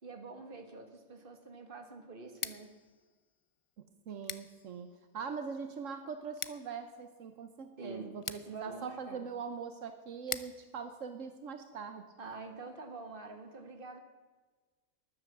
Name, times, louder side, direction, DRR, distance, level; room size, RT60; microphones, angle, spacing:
voice 1, 0.0-2.7 7.8-8.2 8.5-9.3 12.2-14.0, right 3 dB, 45° right, 5 dB, 1.8 m, -46 dB
Scissors, 2.3-12.1, left 6 dB, 55° left, 0.3 m, -48 dB
voice 2, 4.1-12.0, right 6 dB, 80° right, 8 dB, 1.3 m, -42 dB
13.5 x 11.0 x 7.3 m, 1.3 s
omnidirectional pair, 1.3 m